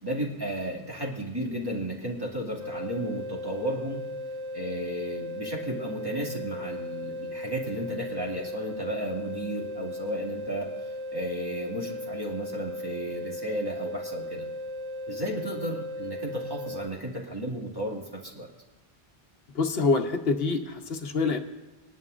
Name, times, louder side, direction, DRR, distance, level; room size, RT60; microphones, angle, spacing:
voice 1, 0.0-4.0 4.5-14.5 15.1-18.5, right 1 dB, 20° right, -3 dB, 2.3 m, -34 dB
sound 1, 2.6-16.9, left 1 dB, 65° right, 3.1 m, -36 dB
voice 2, 19.5-21.4, left 4 dB, 70° left, 5 dB, 1.2 m, -26 dB
20.5 x 11.0 x 2.6 m, 1.2 s
omnidirectional pair, 1.1 m